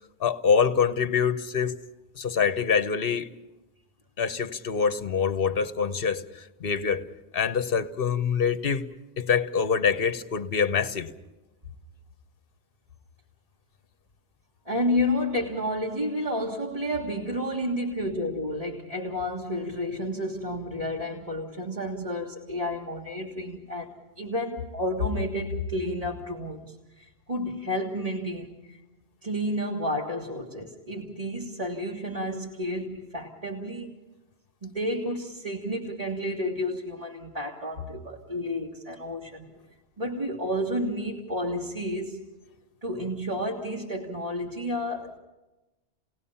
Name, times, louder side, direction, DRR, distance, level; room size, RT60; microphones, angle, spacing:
voice 1, 0.2-1.8 2.1-3.3 4.2-7.0 7.3-8.9 9.2-11.1, left 6 dB, 60° left, 1.1 m, -25 dB
voice 2, 14.7-28.8 29.2-33.9 34.6-39.5 40.0-42.2 42.8-45.2, left 1 dB, 35° right, 2.0 m, -31 dB
30.0 x 18.5 x 5.6 m
omnidirectional pair, 1.1 m